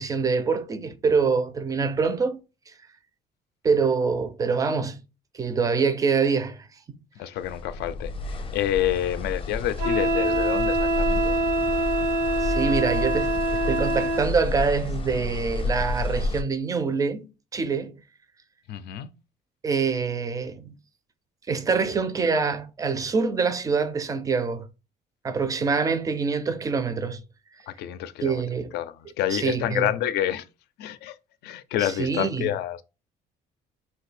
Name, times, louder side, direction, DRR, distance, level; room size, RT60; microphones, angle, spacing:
voice 1, 0.0-2.4 3.6-5.0 5.3-7.0 12.4-17.3 17.5-18.0 19.6-20.7 21.5-24.7 25.2-27.2 28.2-28.7 29.3-29.9 31.8-32.5, right 5 dB, 20° right, 0.4 m, -25 dB
voice 2, 7.2-11.3 18.7-19.1 27.7-28.4 28.7-30.5 30.8-31.2 31.4-32.8, left 12 dB, 75° left, 0.4 m, -28 dB
sound 1, 7.4-16.4, left 2 dB, 35° left, 0.6 m, -31 dB
Wind instrument woodwind instrument, 9.8-14.3, right 1 dB, 80° right, 0.8 m, -25 dB
2.6 x 2.2 x 4.0 m
cardioid pair, 110°, 17 cm